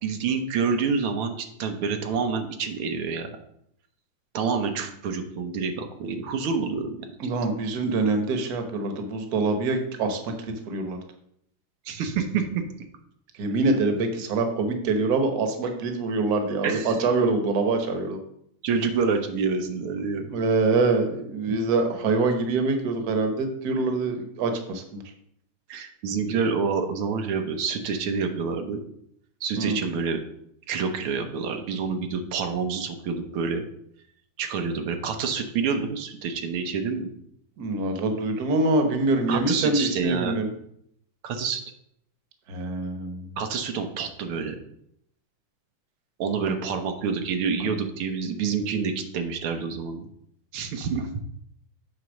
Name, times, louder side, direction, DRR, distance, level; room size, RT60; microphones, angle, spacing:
voice 1, 0.0-3.3 4.3-7.1 11.9-12.6 16.6-17.0 18.6-20.3 25.7-28.8 29.4-30.2 30.7-33.6 34.4-37.1 39.3-40.4 41.2-41.6 43.4-44.6 46.2-50.1 50.5-51.1, right 5 dB, 85° right, 6 dB, 1.8 m, -27 dB
voice 2, 7.2-10.3 10.7-11.0 13.4-18.2 20.3-25.0 29.6-29.8 37.6-40.5 42.5-43.4, right 3 dB, 55° right, 6 dB, 1.4 m, -25 dB
7.9 x 4.1 x 6.2 m, 0.72 s
omnidirectional pair, 2.3 m